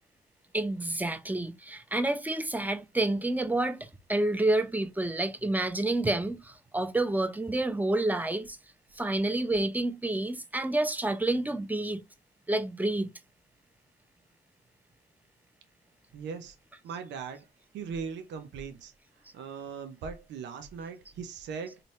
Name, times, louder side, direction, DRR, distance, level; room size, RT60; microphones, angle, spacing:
voice 1, 0.5-8.6 9.0-12.0 12.5-13.1, right 2 dB, 10° right, 0.9 m, -29 dB
voice 2, 16.1-16.5 16.8-17.4 17.7-18.9 19.3-21.8, right 6 dB, 90° right, 0.8 m, -39 dB
3.9 x 2.8 x 3.2 m
cardioid pair, 60°, 18 cm